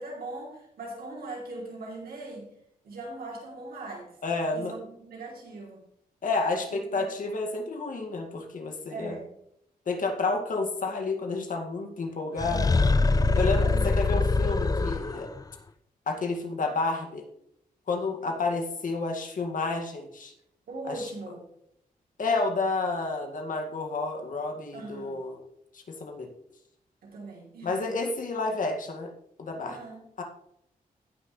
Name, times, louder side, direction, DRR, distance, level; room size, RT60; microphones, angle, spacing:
voice 1, 0.0-2.5 2.8-4.1 4.5-5.8 6.9-7.1 8.9-9.4 13.6-14.1 20.7-21.5 24.7-25.2 27.0-28.0 29.7-30.0, right 2 dB, 80° right, -1 dB, 3.3 m, -40 dB
voice 2, 4.2-4.7 6.2-9.2 9.9-12.9 13.3-15.3 16.1-17.3 17.9-20.3 20.8-21.1 22.2-25.4 25.7-26.3 27.6-29.1 29.4-29.8 30.2-30.3, left 3 dB, 60° left, 3 dB, 2.0 m, -30 dB
sound 1, 12.4-15.4, left 3 dB, 25° left, 0.5 m, -24 dB
16.5 x 6.0 x 3.2 m, 0.74 s
cardioid pair, 75°, 15 cm